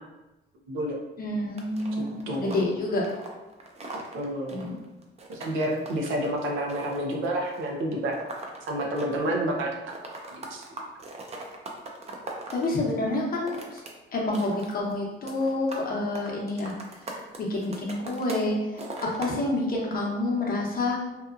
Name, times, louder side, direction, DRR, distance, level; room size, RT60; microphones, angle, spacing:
voice 1, 0.7-1.0 1.9-2.7 4.1-4.6 5.3-8.1 8.7-9.7 10.3-10.6, right 1 dB, 85° right, 0 dB, 0.6 m, -29 dB
voice 2, 1.2-3.1 4.5-4.8 12.5-13.8 14.1-16.7 17.4-18.8 19.2-21.0, left 2 dB, 50° left, -3 dB, 0.8 m, -28 dB
sound 1, 1.6-9.4 9.6-12.7 13.2-13.9 14.2-14.9 15.2-15.9 16.1-18.5 18.8-19.3, right 2 dB, 30° right, 0.5 m, -40 dB
2.8 x 2.2 x 2.4 m, 1.0 s
cardioid pair, 90°, 20 cm